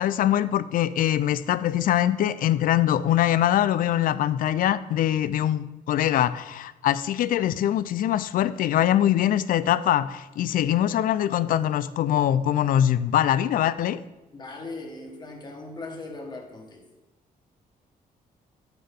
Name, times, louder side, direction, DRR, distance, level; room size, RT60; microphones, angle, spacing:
voice 1, 0.0-14.0, left 11 dB, 65° left, 16 dB, 0.4 m, -23 dB
voice 2, 14.3-16.9, left 2 dB, 30° left, 2 dB, 1.6 m, -39 dB
10.5 x 9.0 x 3.7 m, 1.0 s
cardioid pair, 150°, 15 cm